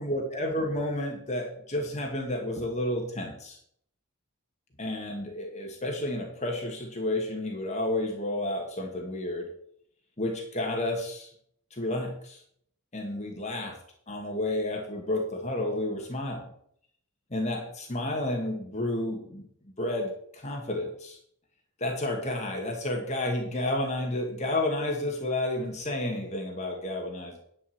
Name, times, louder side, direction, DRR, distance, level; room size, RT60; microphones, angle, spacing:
voice 1, 0.0-3.6 4.8-9.5 10.2-11.3 11.7-12.4 12.9-13.8 14.1-16.5 17.3-19.4 19.8-21.2 21.8-27.4, left 1 dB, 35° left, 1 dB, 1.8 m, -31 dB
10.5 x 5.4 x 7.9 m, 0.68 s
head